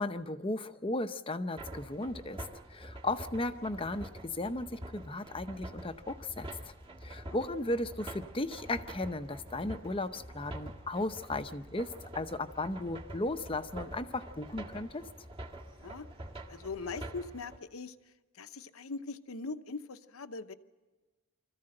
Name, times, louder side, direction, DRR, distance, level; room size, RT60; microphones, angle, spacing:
voice 1, 0.0-6.5 7.0-15.0, left 2 dB, 25° left, 9 dB, 0.7 m, -35 dB
sound 1, 1.6-17.6, right 1 dB, 25° right, 1.7 m, -46 dB
voice 2, 16.5-18.0 18.3-20.5, left 3 dB, 70° left, 10 dB, 0.8 m, -41 dB
25.5 x 15.0 x 7.7 m, 1.3 s
head